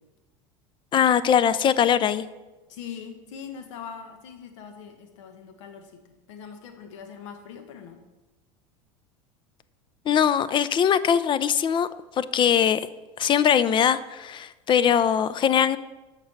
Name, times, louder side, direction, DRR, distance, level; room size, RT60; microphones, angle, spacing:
voice 1, 0.9-2.2 10.1-11.9 12.2-12.8 13.2-15.8, left 8 dB, 30° left, 15 dB, 0.4 m, -21 dB
voice 2, 2.7-6.0 6.3-8.0, left 7 dB, 70° left, 7 dB, 1.2 m, -41 dB
7.0 x 5.2 x 5.9 m, 1.1 s
hypercardioid pair, 90°, 16 cm